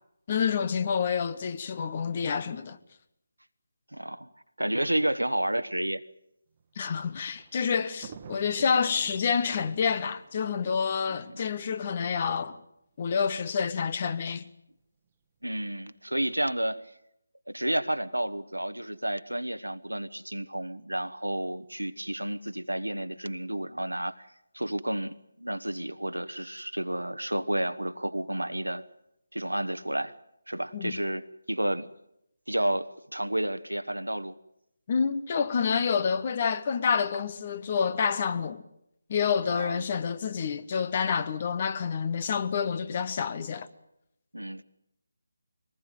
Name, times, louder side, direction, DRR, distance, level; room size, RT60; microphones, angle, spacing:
voice 1, 0.3-2.8 6.8-12.6 13.0-14.5 30.7-31.0 34.9-38.6 39.1-43.7, left 6 dB, 30° left, 1.2 m, -28 dB
voice 2, 3.9-4.3 4.6-6.0 11.1-11.5 15.4-16.8 17.5-24.3 24.5-28.8 29.3-30.1 30.5-31.9 32.5-34.4 39.5-39.8 44.3-44.6, right 1 dB, 85° right, 1.3 m, -31 dB
Thunder, 6.6-11.9 12.7-12.8 13.1-13.2 14.2-14.5, right 6 dB, 25° right, 1.4 m, -50 dB
23.0 x 19.5 x 9.1 m
figure-of-eight pair, 155°, 0 cm